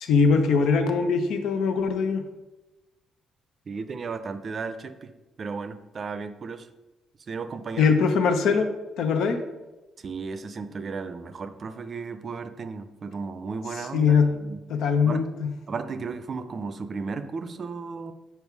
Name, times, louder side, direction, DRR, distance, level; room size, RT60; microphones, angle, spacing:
voice 1, 0.0-2.2 7.8-8.7 9.0-9.4 13.9-14.3 14.7-15.5, left 5 dB, 80° left, 7 dB, 0.7 m, -21 dB
voice 2, 3.7-5.1 5.4-6.7 7.3-8.0 10.0-14.6 15.0-15.3 15.7-18.1, right 4 dB, 45° right, 10 dB, 0.5 m, -34 dB
5.4 x 4.5 x 4.7 m, 1.1 s
cardioid pair, 90°, 0 cm